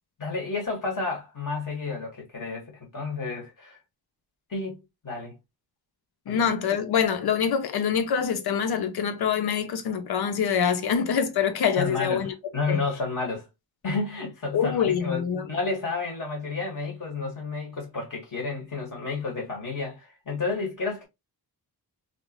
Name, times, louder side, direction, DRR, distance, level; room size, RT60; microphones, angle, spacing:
voice 1, 0.2-3.8 4.5-5.4 6.3-6.5 11.8-12.3 12.5-13.5 13.8-21.1, left 4 dB, 55° left, 1.8 m, -31 dB
voice 2, 6.3-12.3 12.7-12.8 14.5-15.5, left 7 dB, 70° left, 0.7 m, -25 dB
3.2 x 2.6 x 3.0 m
wide cardioid pair, 145°, 39 cm